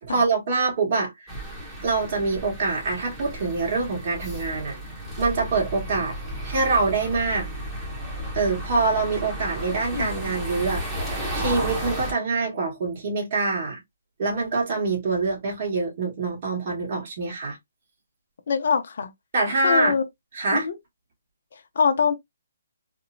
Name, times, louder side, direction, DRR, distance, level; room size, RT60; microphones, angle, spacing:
voice 1, 0.0-1.3 1.8-4.8 5.2-6.2 6.4-7.5 8.3-10.8 11.3-13.8 14.2-17.6 19.3-20.0 20.3-20.7, right 3 dB, 45° right, 1.4 m, -25 dB
sound 1, 1.3-12.1, right 1 dB, 5° right, 0.8 m, -33 dB
voice 2, 9.9-10.3 18.5-19.1 19.6-20.0 20.5-20.7 21.8-22.1, left 6 dB, 60° left, 0.6 m, -23 dB
2.9 x 2.0 x 2.5 m
hypercardioid pair, 155°, 0 cm